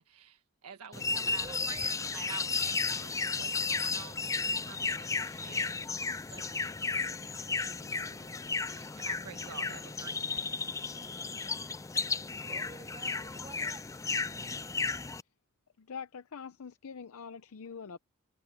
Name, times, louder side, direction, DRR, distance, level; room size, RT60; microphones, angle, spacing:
voice 1, 0.0-10.5, right 7 dB, 85° right, 1.5 m, -50 dB
sound 1, 0.9-15.2, left 4 dB, 15° left, 0.3 m, -34 dB
voice 2, 1.2-1.8 12.5-14.1, right 3 dB, 25° right, 2.2 m, -50 dB
voice 3, 15.9-18.0, left 6 dB, 65° left, 0.6 m, -44 dB
head